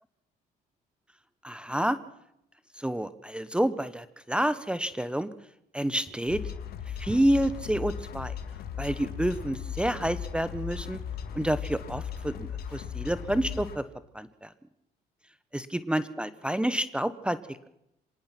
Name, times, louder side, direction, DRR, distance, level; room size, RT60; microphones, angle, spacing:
voice 1, 1.4-2.0 2.7-5.3 5.7-6.4 6.9-8.3 8.8-11.0 11.3-13.8 14.1-14.5 15.5-17.7, right 1 dB, 5° right, 14 dB, 0.9 m, -29 dB
sound 1, 6.3-13.8, left 8 dB, 65° left, 2.2 m, -37 dB
26.0 x 18.5 x 5.9 m, 0.80 s
cardioid pair, 110°, 17 cm